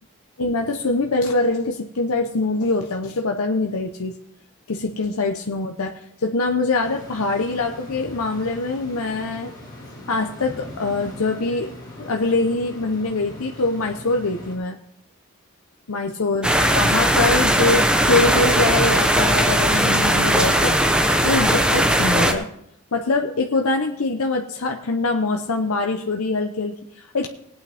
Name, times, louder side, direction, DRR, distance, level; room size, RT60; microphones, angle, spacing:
voice 1, 0.4-4.1 4.7-9.5 10.1-11.7 12.0-14.8 15.9-20.8 21.2-22.5 22.9-27.3, left 3 dB, 90° left, 3 dB, 0.8 m, -23 dB
sound 1, 6.8-14.6, left 1 dB, 20° left, 5.4 m, -40 dB
sound 2, 16.4-22.3, right 1 dB, 5° right, 0.8 m, -18 dB
19.0 x 8.8 x 3.5 m, 0.75 s
head